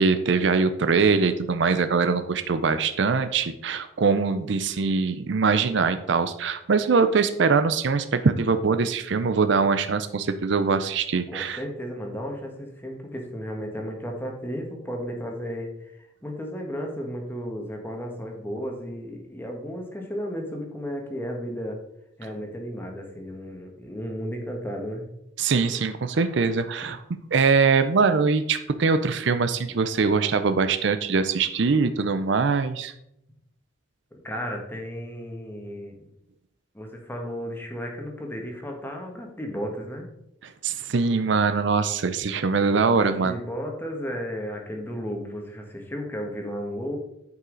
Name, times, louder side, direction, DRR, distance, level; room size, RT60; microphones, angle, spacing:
voice 1, 0.0-11.6 25.4-27.0 27.3-32.9 40.4-43.3, right 4 dB, 60° right, 10 dB, 0.5 m, -22 dB
voice 2, 11.3-21.8 22.2-25.0 34.1-36.1 36.7-40.1 42.9-47.0, equal, 10° left, 1 dB, 1.3 m, -34 dB
9.3 x 5.6 x 3.9 m, 0.79 s
head